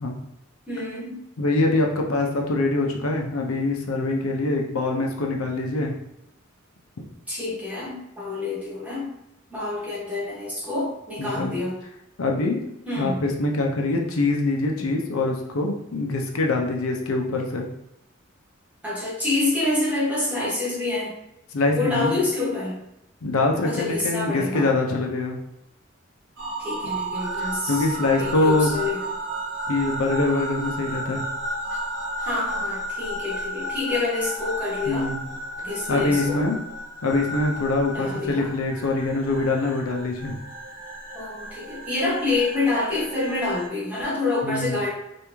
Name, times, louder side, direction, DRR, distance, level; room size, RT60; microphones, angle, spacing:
voice 1, 0.7-1.3 7.3-9.1 9.5-11.8 12.9-13.2 18.8-21.2 21.7-22.8 23.6-24.7 26.6-29.0 31.7-31.8 32.2-35.2 35.6-36.5 37.9-38.6 41.1-44.9, left 2 dB, 5° right, -6 dB, 1.0 m, -27 dB
voice 2, 1.4-5.9 11.2-11.6 12.2-12.7 13.0-17.7 21.5-22.1 23.2-25.4 27.4-28.7 29.7-31.2 34.9-35.2 35.9-36.6 37.0-40.3 44.4-44.8, left 2 dB, 90° left, 1 dB, 0.6 m, -24 dB
sound 1, 26.4-43.7, right 1 dB, 70° right, 1.1 m, -33 dB
3.4 x 2.6 x 3.0 m, 0.85 s
head